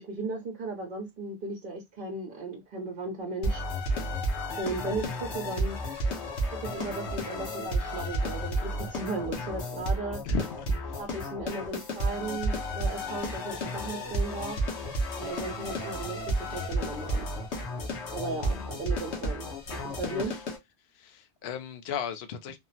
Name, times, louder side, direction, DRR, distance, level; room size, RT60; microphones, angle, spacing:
voice 1, 0.0-3.6 4.6-5.8 6.5-10.2 11.0-14.6 15.2-17.3 18.1-20.4, right 3 dB, 55° right, 0.9 m, -36 dB
sound 1, 3.4-20.6, equal, 90° left, 1.2 m, -32 dB
voice 2, 10.2-11.0 18.4-18.7 20.3-20.4 20.9-22.6, left 7 dB, 75° left, 0.8 m, -36 dB
3.6 x 2.0 x 2.6 m
omnidirectional pair, 1.1 m